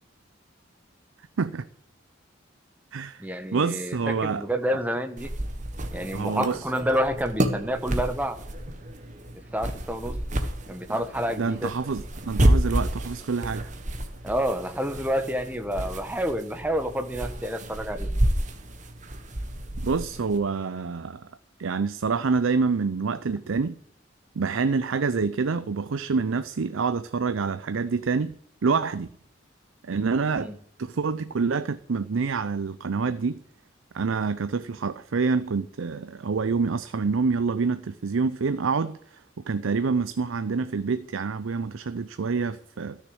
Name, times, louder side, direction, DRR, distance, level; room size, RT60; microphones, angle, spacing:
voice 1, 1.4-1.7 2.9-3.3 3.5-4.5 6.1-6.6 11.4-13.7 19.8-21.3 21.6-23.8 24.4-28.3 28.6-29.1 29.8-30.5 30.8-33.4 33.9-43.0, right 4 dB, 85° right, 0.5 m, -27 dB
voice 2, 3.2-5.3 5.9-8.4 9.5-10.2 10.7-11.7 14.2-18.1 30.3-30.5, equal, 10° right, 1.1 m, -28 dB
sound 1, 5.2-20.4, right 1 dB, 40° right, 1.4 m, -30 dB
13.5 x 6.6 x 7.7 m
head